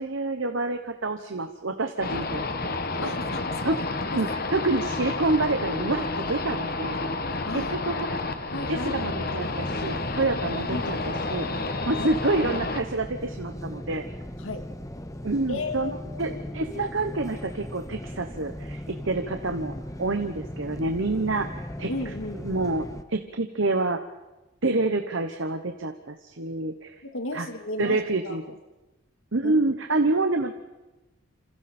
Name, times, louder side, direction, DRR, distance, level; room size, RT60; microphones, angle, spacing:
voice 1, 0.0-2.4 2.9-3.1 3.6-3.8 4.1-7.0 7.5-8.2 8.7-14.1 15.2-15.9 16.2-21.9 22.4-24.0 24.6-27.0 27.3-27.5 27.8-28.4 29.3-30.5, right 2 dB, 60° right, 7 dB, 1.1 m, -27 dB
sound 1, 2.0-12.8, left 3 dB, 45° left, 1.4 m, -30 dB
voice 2, 3.0-3.8 4.1-4.2 7.4-7.9 8.5-8.9 10.7-10.9 11.9-12.1 14.4-14.7 15.5-16.7 21.9-22.4 27.0-28.0 28.2-28.4 29.4-29.5, left 2 dB, 70° left, 7 dB, 2.1 m, -34 dB
sound 2, 9.4-23.0, left 1 dB, 15° left, 1.0 m, -38 dB
28.0 x 27.0 x 4.4 m, 1.1 s
head